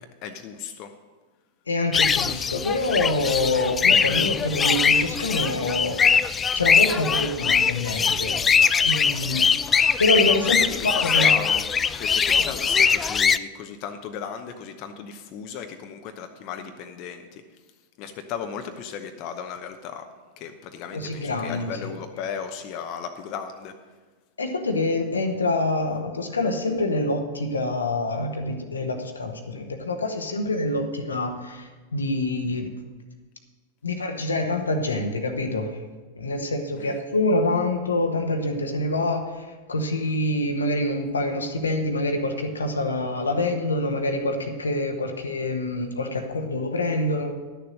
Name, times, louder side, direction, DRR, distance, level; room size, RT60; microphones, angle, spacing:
voice 1, 0.2-0.9 9.2-9.5 10.7-11.6 12.0-17.4 18.0-20.0 20.4-23.7 36.8-37.0, left 7 dB, 45° left, 6 dB, 0.8 m, -36 dB
voice 2, 1.7-6.1 6.5-8.4 8.8-9.4 10.0-11.3 12.5-12.6 20.9-21.8 24.4-32.7 33.8-35.9 36.2-47.4, left 2 dB, 80° left, 5 dB, 1.1 m, -26 dB
sound 1, 1.9-13.4, left 6 dB, 20° left, 0.3 m, -21 dB
11.5 x 6.8 x 6.4 m, 1.3 s
figure-of-eight pair, 95°, 0 cm